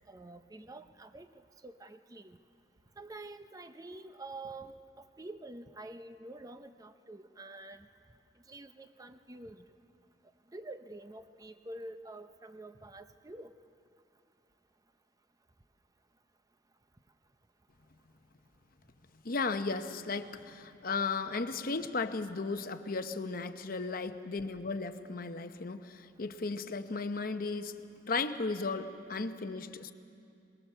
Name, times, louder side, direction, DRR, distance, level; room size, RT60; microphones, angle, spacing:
voice 1, 0.1-1.3 1.6-2.4 3.0-7.9 8.5-9.6 10.5-13.5, right 2 dB, 20° right, 9 dB, 0.6 m, -47 dB
voice 2, 19.2-27.7 28.1-29.9, left 4 dB, 50° left, 9 dB, 0.8 m, -35 dB
22.5 x 21.0 x 6.8 m, 2.6 s
head